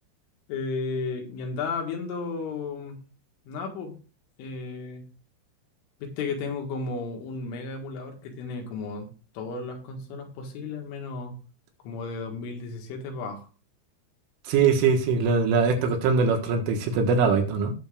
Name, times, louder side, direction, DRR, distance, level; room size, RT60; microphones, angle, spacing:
voice 1, 0.5-3.0 3.5-4.0 4.4-5.0 6.0-9.1 9.3-11.4 11.8-13.5 14.6-14.7, left 4 dB, 90° left, 2 dB, 4.3 m, -34 dB
voice 2, 14.5-17.7, right 5 dB, 90° right, 3 dB, 4.1 m, -22 dB
17.5 x 6.9 x 2.5 m, 0.35 s
omnidirectional pair, 5.5 m